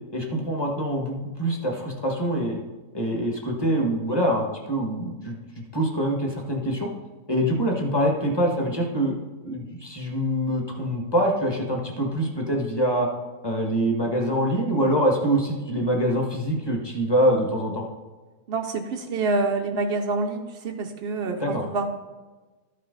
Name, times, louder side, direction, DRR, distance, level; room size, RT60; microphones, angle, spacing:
voice 1, 0.1-2.6 2.9-6.9 7.3-9.2 9.4-13.1 13.4-17.8 21.4-21.6, equal, 15° left, 0 dB, 1.3 m, -25 dB
voice 2, 18.5-21.8, right 3 dB, 65° right, 3 dB, 0.6 m, -27 dB
13.0 x 5.5 x 3.9 m, 1.3 s
omnidirectional pair, 1.7 m